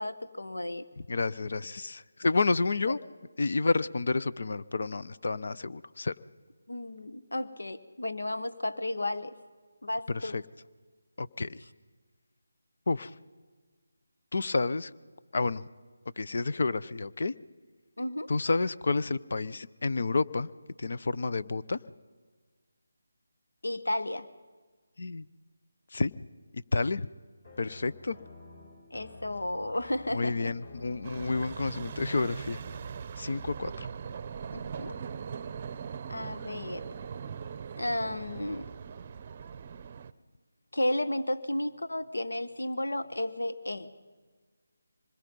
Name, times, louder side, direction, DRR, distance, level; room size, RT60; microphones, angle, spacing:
voice 1, 0.0-0.8 2.9-3.0 6.7-9.4 9.8-10.3 18.0-18.3 23.6-24.3 28.9-30.5 34.5-35.0 36.1-36.8 37.8-38.6 40.7-43.9, left 1 dB, 85° left, 11 dB, 1.2 m, -33 dB
voice 2, 1.0-3.0 3.4-6.1 10.1-10.4 11.2-11.6 12.9-13.1 14.3-14.9 15.3-15.6 16.2-17.3 18.3-20.5 20.8-21.8 25.0-25.2 25.9-26.1 26.5-27.1 27.6-28.2 30.1-32.6 33.2-33.9, left 3 dB, 60° left, 15 dB, 0.7 m, -30 dB
sound 1, 27.4-33.0, left 3 dB, 45° left, 5.7 m, -50 dB
sound 2, 31.0-40.1, right 6 dB, 30° right, 0.7 m, -40 dB
25.5 x 21.5 x 5.4 m, 1.5 s
figure-of-eight pair, 160°, 0 cm